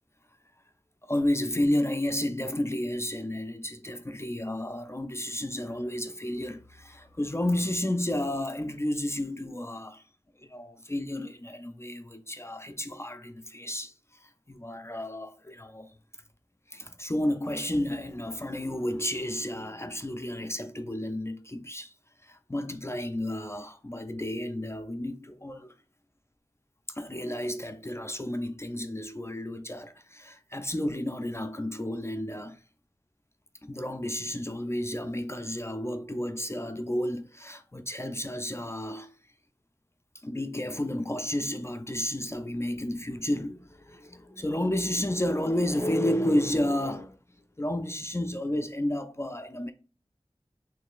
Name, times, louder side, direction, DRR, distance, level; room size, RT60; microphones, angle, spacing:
voice 1, 1.0-10.0 10.4-15.9 16.7-21.9 22.2-25.7 26.9-32.6 33.6-39.1 40.2-47.2 47.6-49.7, left 1 dB, 25° left, 0.3 m, -31 dB
3.6 x 3.1 x 2.5 m
wide cardioid pair, 45°, 11 cm